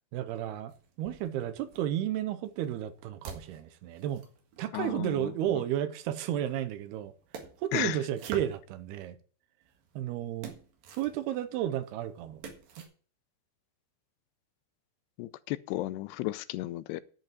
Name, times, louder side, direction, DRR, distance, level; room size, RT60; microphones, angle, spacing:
voice 1, 0.1-0.7 1.0-4.2 4.6-7.1 7.6-9.2 10.0-10.6 10.9-12.4 12.8-12.9, right 11 dB, 85° right, 2.7 m, -32 dB
sound 1, 0.7-1.8 2.4-5.4 6.4-9.1 9.6-12.9, right 5 dB, 65° right, 3.3 m, -49 dB
voice 2, 4.7-5.6 7.7-8.0 15.2-17.0, left 17 dB, 85° left, 2.7 m, -34 dB
11.0 x 5.5 x 7.3 m
omnidirectional pair, 4.7 m